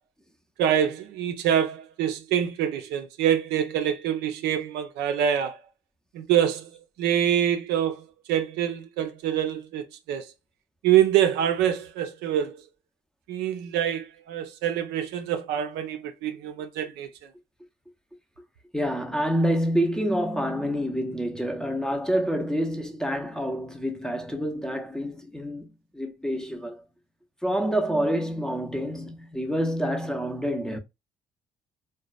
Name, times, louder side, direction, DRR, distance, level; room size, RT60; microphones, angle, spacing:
voice 1, 0.6-5.6 6.1-6.7 7.0-10.2 10.8-12.6 13.3-17.1, right 10 dB, 55° right, 0.5 m, -25 dB
voice 2, 18.7-25.7 25.9-26.8 27.4-30.8, equal, 5° left, 0.6 m, -27 dB
3.8 x 2.2 x 2.3 m
figure-of-eight pair, 45°, 20 cm